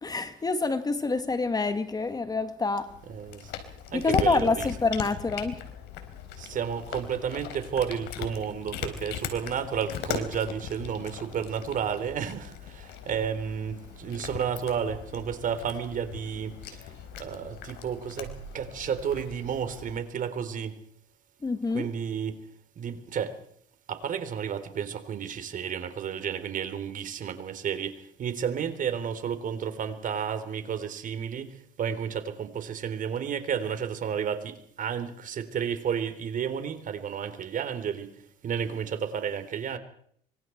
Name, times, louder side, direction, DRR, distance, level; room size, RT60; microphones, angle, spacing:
voice 1, 0.0-2.9 3.9-5.6 21.4-21.9, left 3 dB, 20° left, 1.9 m, -27 dB
Cat, 2.9-20.0, left 8 dB, 85° left, 4.2 m, -39 dB
voice 2, 3.1-3.5 3.9-4.7 6.4-16.8 17.2-20.8 21.7-22.4 22.8-23.4 23.9-31.5 31.8-38.1 38.4-39.8, right 7 dB, 50° right, 3.7 m, -32 dB
26.0 x 24.5 x 4.6 m
cardioid pair, 110°, 17 cm